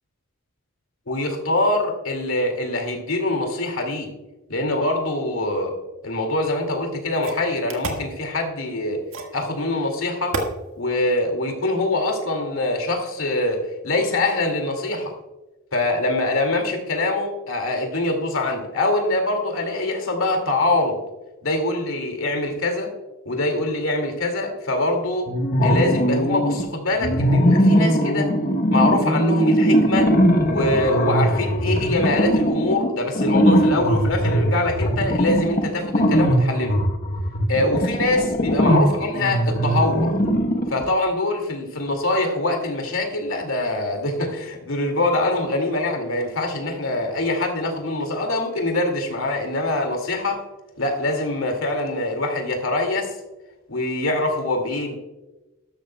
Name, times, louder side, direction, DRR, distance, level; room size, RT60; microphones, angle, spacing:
voice 1, 1.1-4.1 4.5-5.7 6.0-9.0 9.3-10.4 10.8-15.1 15.7-21.0 21.4-22.9 23.3-25.3 25.6-28.3 28.7-30.1 30.4-36.8 37.5-40.1 40.7-50.4 50.8-53.1 53.7-55.0, left 2 dB, 80° left, 3 dB, 2.2 m, -24 dB
sound 1, 6.5-6.6 7.2-8.1 9.1-9.4 10.3-10.5, right 2 dB, 75° right, 1.6 m, -29 dB
sound 2, 25.3-26.6 27.0-40.9, equal, 40° left, 1.0 m, -20 dB
13.0 x 12.0 x 2.2 m, 1.1 s
head